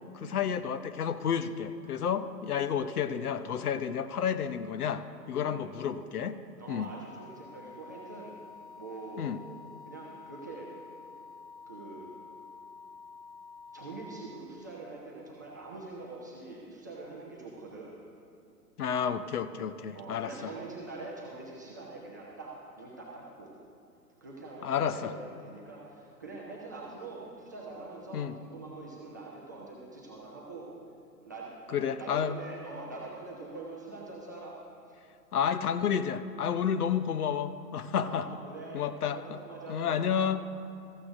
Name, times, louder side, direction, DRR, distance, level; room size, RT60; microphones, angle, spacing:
voice 1, 0.1-6.4 6.7-6.9 9.2-9.4 18.8-20.3 24.6-25.1 28.1-28.3 31.7-32.4 35.3-38.3 38.7-39.4 39.7-40.4, left 8 dB, 65° left, 12 dB, 0.7 m, -31 dB
voice 2, 6.6-8.3 8.8-9.3 9.9-10.7 11.7-12.1 13.7-17.9 19.9-23.5 24.2-30.7 31.2-34.6 34.9-35.0 38.0-40.2, right 3 dB, 15° right, -5 dB, 0.4 m, -44 dB
sound 1, 6.8-14.1, left 4 dB, 30° left, 2.6 m, -49 dB
15.0 x 14.0 x 2.5 m, 2.7 s
figure-of-eight pair, 120°, 49 cm